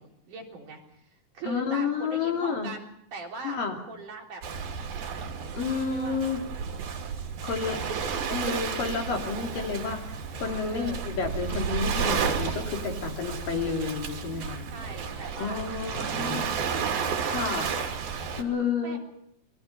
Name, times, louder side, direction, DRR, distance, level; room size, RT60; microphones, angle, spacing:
voice 1, 0.0-4.4 5.6-6.2 7.6-8.3 10.7-11.0 14.7-16.9 18.8-19.0, right 3 dB, 60° right, 0 dB, 5.1 m, -42 dB
voice 2, 1.4-2.7 3.4-3.8 5.5-6.4 7.4-7.8 8.3-10.0 10.4-14.7 15.4-16.4 17.3-17.7 18.4-19.0, left 5 dB, 70° left, 2 dB, 4.8 m, -30 dB
Waves surf, 4.4-18.4, right 6 dB, 90° right, 4.4 m, -32 dB
27.5 x 22.5 x 5.7 m, 0.68 s
omnidirectional pair, 4.1 m